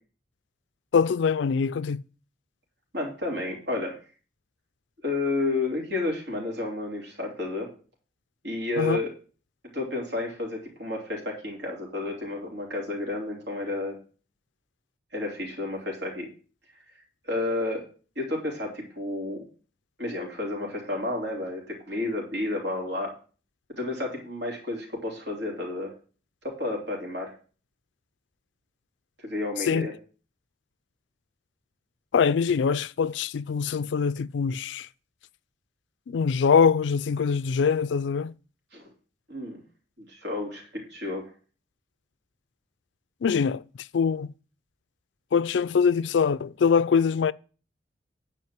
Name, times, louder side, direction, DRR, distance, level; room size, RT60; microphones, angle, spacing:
voice 1, 0.9-2.0 8.8-9.0 29.7-29.9 32.1-34.9 36.1-38.3 43.2-43.6 43.9-44.3 45.3-47.3, left 6 dB, 70° left, 0.4 m, -23 dB
voice 2, 2.9-4.0 5.0-7.7 8.4-9.1 9.7-14.0 15.1-16.3 17.2-17.9 18.1-19.4 20.0-23.1 23.8-25.9 26.4-27.3 29.2-29.9 38.7-38.9 39.3-39.6 40.0-41.3, left 2 dB, 70° right, 3.4 m, -31 dB
9.5 x 5.0 x 7.4 m
head